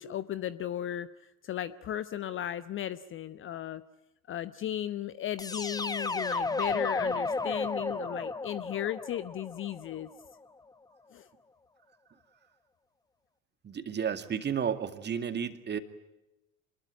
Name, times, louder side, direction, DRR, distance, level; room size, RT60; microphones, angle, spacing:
voice 1, 0.0-3.8 4.3-10.1 11.1-11.3, left 11 dB, 30° left, 15 dB, 0.9 m, -36 dB
sound 1, 5.4-10.3, left 3 dB, 10° left, 1.2 m, -33 dB
voice 2, 13.6-15.8, right 7 dB, 25° right, 9 dB, 2.2 m, -32 dB
27.0 x 21.5 x 9.2 m, 0.95 s
figure-of-eight pair, 75°, 43 cm